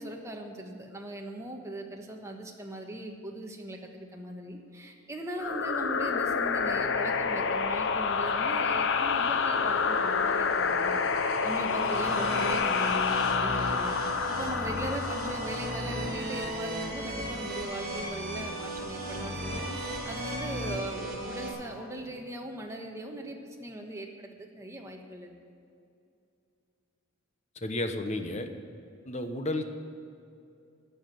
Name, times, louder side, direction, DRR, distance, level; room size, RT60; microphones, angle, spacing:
voice 1, 0.0-11.0 11.4-14.0 14.3-25.3, right 1 dB, 15° right, 1 dB, 1.4 m, -39 dB
sound 1, 5.4-16.7, left 5 dB, 60° left, 0.7 m, -28 dB
sound 2, 6.2-16.2, left 1 dB, 15° left, 1.8 m, -51 dB
sound 3, 8.5-21.5, right 1 dB, 45° right, 3.8 m, -36 dB
voice 2, 27.6-28.5 29.0-29.6, left 1 dB, 35° left, 7 dB, 1.0 m, -32 dB
12.0 x 8.1 x 9.3 m, 2.5 s
head